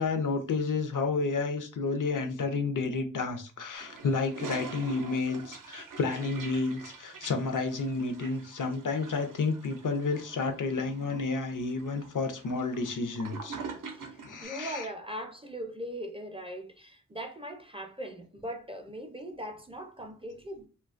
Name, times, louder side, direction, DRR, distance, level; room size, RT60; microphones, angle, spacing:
voice 1, 0.0-13.6 14.2-14.9, left 4 dB, 75° left, 0.5 m, -31 dB
Toilet flush, 3.8-14.4, right 4 dB, 80° right, 0.5 m, -45 dB
voice 2, 13.9-20.7, equal, 20° right, 0.4 m, -40 dB
3.0 x 2.2 x 2.4 m
wide cardioid pair, 75°, 32 cm